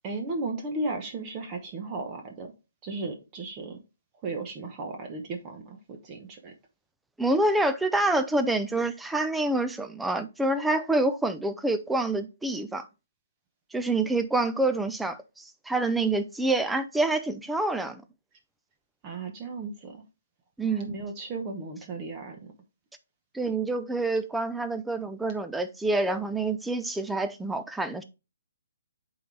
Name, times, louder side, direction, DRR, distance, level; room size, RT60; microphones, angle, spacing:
voice 1, 0.0-2.5 2.8-3.8 4.2-6.5 19.0-20.0 20.8-22.4, right 3 dB, 20° right, 0.9 m, -35 dB
voice 2, 7.2-12.9 13.7-18.0 20.6-20.9 23.3-28.0, right 2 dB, 5° right, 0.4 m, -27 dB
7.8 x 3.9 x 3.3 m
hypercardioid pair, 165°, 0 cm